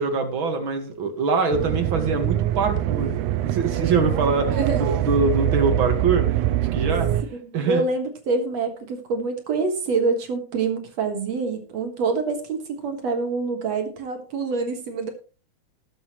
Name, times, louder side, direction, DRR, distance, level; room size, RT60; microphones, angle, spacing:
voice 1, 0.0-6.3 6.7-7.1 7.5-7.8, right 4 dB, 45° right, 5 dB, 2.3 m, -24 dB
sound 1, 1.5-7.2, right 12 dB, 80° right, 2.0 m, -24 dB
voice 2, 4.5-4.8 7.4-15.1, right 4 dB, 65° right, 5 dB, 2.7 m, -26 dB
19.0 x 7.8 x 3.1 m, 0.35 s
omnidirectional pair, 3.5 m